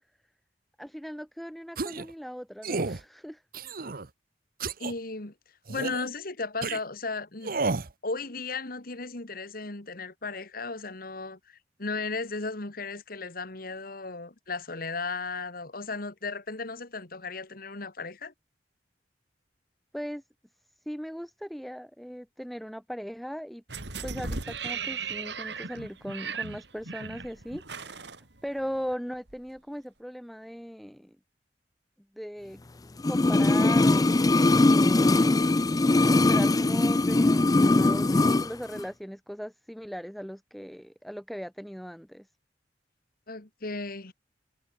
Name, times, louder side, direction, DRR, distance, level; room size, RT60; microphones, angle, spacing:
voice 1, 0.8-3.4 19.9-20.2 20.9-23.6 24.0-28.0 28.4-31.2 32.1-32.6 33.1-35.7 36.0-42.3, equal, ahead, 2.4 m, -39 dB
sound 1, 1.8-2.1 2.6-3.0 3.5-4.1 4.6-4.9 5.7-6.1 6.6-6.8 7.4-7.9, right 3 dB, 55° right, 1.0 m, -31 dB
voice 2, 4.8-5.3 5.7-7.6 8.0-18.3 43.3-44.1, left 3 dB, 55° left, 2.1 m, -35 dB
sound 2, 23.7-28.9 29.3-29.4, right 5 dB, 75° right, 3.4 m, -37 dB
sound 3, 33.0-38.5 38.8-38.9, left 2 dB, 20° left, 0.4 m, -21 dB
head